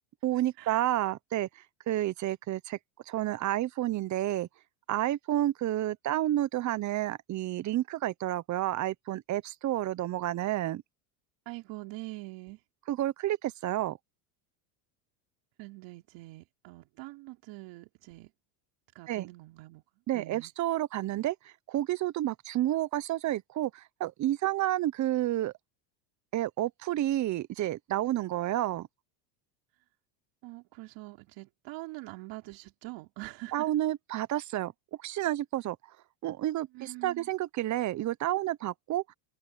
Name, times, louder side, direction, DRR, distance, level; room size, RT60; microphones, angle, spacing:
voice 1, 0.2-2.8 3.1-4.5 4.9-10.8 12.9-14.0 19.1-19.3 20.1-25.5 26.3-28.9 33.5-34.7 35.0-35.8 36.2-39.0, right 14 dB, 35° right, 1.0 m, -30 dB
voice 2, 11.5-12.6 15.6-18.3 18.9-19.8 20.1-20.5 30.4-33.7 36.7-37.3, right 22 dB, 60° right, 4.2 m, -44 dB
supercardioid pair, 120°, 49 cm